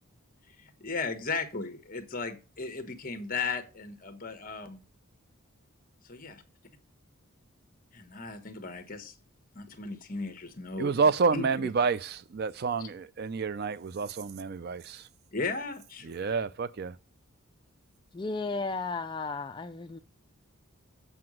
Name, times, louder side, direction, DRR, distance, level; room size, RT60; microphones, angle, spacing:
voice 1, 0.6-4.8 6.1-6.4 7.9-9.1 9.5-10.9 11.3-11.7 12.8-12.9 15.3-16.4, left 4 dB, 40° left, 1.1 m, -36 dB
voice 2, 10.8-15.0 16.1-16.9, right 5 dB, 45° right, 0.4 m, -29 dB
voice 3, 18.1-20.0, left 3 dB, 20° left, 0.3 m, -34 dB
7.8 x 4.8 x 6.2 m
head